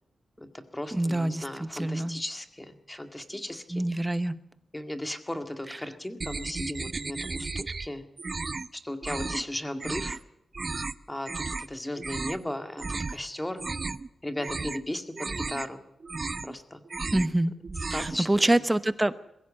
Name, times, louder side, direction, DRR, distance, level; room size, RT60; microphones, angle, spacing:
voice 1, 0.4-3.8 4.7-8.0 8.7-10.2 11.1-13.6 14.2-15.8 16.4-16.8 17.9-18.5, left 1 dB, 10° left, 7 dB, 1.9 m, -36 dB
voice 2, 0.9-2.2 3.7-4.4 5.7-5.8 17.1-17.5 17.9-19.2, right 1 dB, 15° right, 13 dB, 0.9 m, -26 dB
sound 1, 6.2-7.9 8.2-8.7 9.0-9.4 9.8-10.2 10.5-10.9 11.3-11.7 12.0-12.4 12.8-13.2 13.5-14.1 14.4-14.8 15.2-15.7 16.0-16.6 16.9-17.3 17.6-18.2, right 3 dB, 35° right, 0.7 m, -34 dB
22.5 x 15.5 x 8.6 m, 0.80 s
wide cardioid pair, 115°, 0 cm